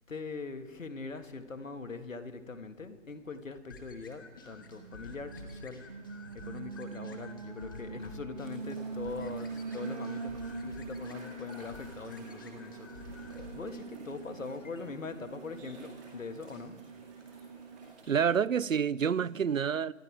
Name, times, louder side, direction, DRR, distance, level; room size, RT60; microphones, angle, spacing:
voice 1, 0.1-6.0 6.3-16.8, left 4 dB, 75° left, 1.9 m, -42 dB
sound 1, 3.7-13.8, left 3 dB, 15° left, 1.1 m, -50 dB
Alarm, 4.5-17.9, right 3 dB, 30° right, 0.7 m, -43 dB
sound 2, 8.3-18.2, right 2 dB, ahead, 0.8 m, -54 dB
voice 2, 18.1-19.9, right 7 dB, 80° right, 0.6 m, -28 dB
25.0 x 11.5 x 4.8 m
figure-of-eight pair, 160°, 39 cm